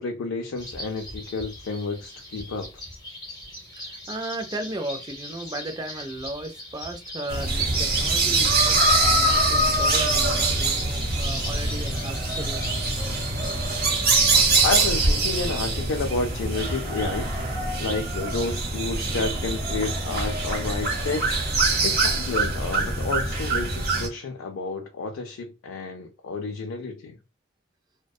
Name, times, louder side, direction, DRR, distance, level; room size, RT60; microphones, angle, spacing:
voice 1, 0.0-2.7 14.6-17.3 17.8-21.3 21.8-27.2, left 3 dB, 80° left, 0.4 m, -30 dB
sound 1, 0.6-14.9, left 1 dB, 20° left, 0.6 m, -39 dB
voice 2, 3.8-12.8, right 1 dB, 20° right, 0.3 m, -36 dB
sound 2, 7.3-24.1, right 2 dB, 45° right, 0.8 m, -24 dB
2.6 x 2.1 x 2.3 m
head